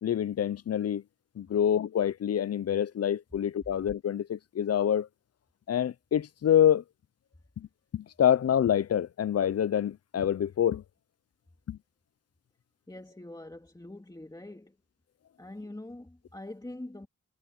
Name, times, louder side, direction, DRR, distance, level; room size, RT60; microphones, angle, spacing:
voice 1, 0.0-1.0 1.4-5.1 5.7-6.8 7.6-7.7 7.9-10.8 11.7-11.8, left 9 dB, 55° left, 0.5 m, -26 dB
voice 2, 12.9-14.8 15.4-17.1, left 1 dB, 15° left, 2.6 m, -44 dB
wide cardioid pair, 150°, 31 cm